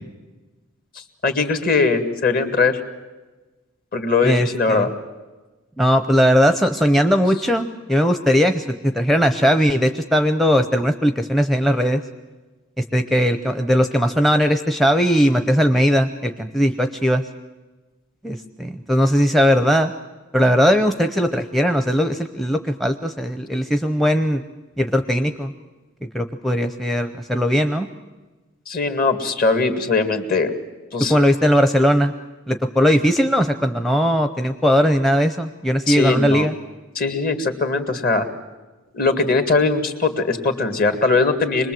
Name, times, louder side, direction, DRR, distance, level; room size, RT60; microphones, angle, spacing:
voice 1, 1.2-2.8 3.9-4.9 28.7-30.5 30.9-31.1 35.9-36.5 37.0-38.3 38.9-41.7, left 3 dB, 45° left, 7 dB, 2.0 m, -20 dB
voice 2, 4.2-4.9 5.8-12.0 12.8-17.2 18.2-19.9 20.3-24.4 24.8-25.5 26.1-27.9 31.1-32.1 32.5-36.5, equal, ahead, 8 dB, 0.7 m, -19 dB
26.0 x 20.5 x 7.7 m, 1.2 s
head